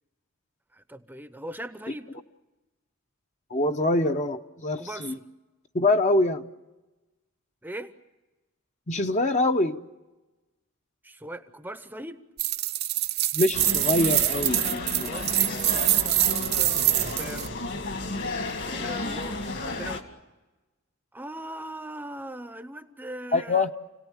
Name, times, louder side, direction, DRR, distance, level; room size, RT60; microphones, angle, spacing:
voice 1, 0.7-2.1 4.8-5.3 7.6-8.0 11.0-12.2 14.8-16.3 17.0-17.5 18.7-20.0 21.1-23.7, right 1 dB, 10° right, 10 dB, 0.8 m, -40 dB
voice 2, 3.5-5.2 5.7-6.4 8.9-9.8 13.3-15.5 23.3-23.7, left 2 dB, 35° left, 7 dB, 0.8 m, -25 dB
sound 1, 12.4-17.5, right 15 dB, 50° right, 0.7 m, -25 dB
sound 2, 13.5-20.0, left 2 dB, 55° left, 2.3 m, -33 dB
29.5 x 18.0 x 7.3 m, 1.1 s
head